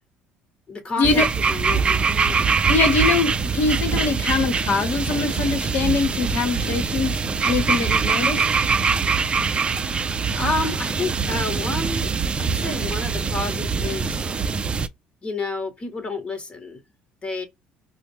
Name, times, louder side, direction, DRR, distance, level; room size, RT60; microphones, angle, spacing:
voice 1, 0.7-2.4 10.3-12.1 12.4-14.2 15.2-16.8 17.2-17.5, left 3 dB, 30° left, 1.1 m, -30 dB
sound 1, 1.0-14.9, right 5 dB, 30° right, 0.4 m, -23 dB
voice 2, 2.7-8.4, left 4 dB, 60° left, 1.0 m, -23 dB
4.3 x 2.1 x 2.9 m
supercardioid pair, 85°, 4 cm